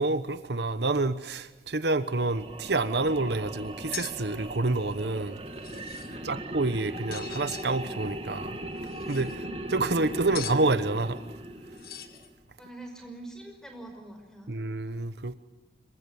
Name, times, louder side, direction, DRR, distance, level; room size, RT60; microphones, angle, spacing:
voice 1, 0.0-5.4 6.2-8.6 9.1-9.3 9.7-11.3 14.5-15.4, right 2 dB, 75° right, 1.2 m, -28 dB
sound 1, 2.0-12.3, right 1 dB, 30° right, 2.4 m, -39 dB
sound 2, 3.9-4.1 5.5-6.1 7.1-7.7 8.8-9.4 10.3-10.6 11.7-12.3, left 11 dB, 55° left, 1.8 m, -41 dB
voice 2, 12.6-14.6, right 2 dB, 5° left, 5.5 m, -45 dB
27.0 x 24.0 x 7.2 m
head